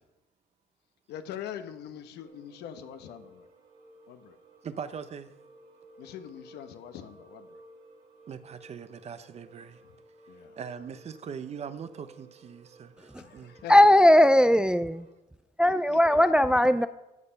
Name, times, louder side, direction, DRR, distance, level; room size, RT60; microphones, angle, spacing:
voice 1, 1.1-3.5 4.1-4.4 6.0-7.6 9.8-9.9 10.3-10.6 13.1-13.9 15.6-16.3, left 10 dB, 80° left, 1.0 m, -43 dB
sound 1, 2.2-15.1, right 2 dB, 70° right, 2.9 m, -55 dB
voice 2, 4.6-5.3 8.3-9.8 10.6-12.9 13.3-13.5, right 7 dB, 40° right, 0.7 m, -40 dB
voice 3, 13.7-15.0 15.6-16.9, left 1 dB, 5° right, 0.3 m, -19 dB
13.5 x 6.7 x 5.7 m
cardioid pair, 110°, 17 cm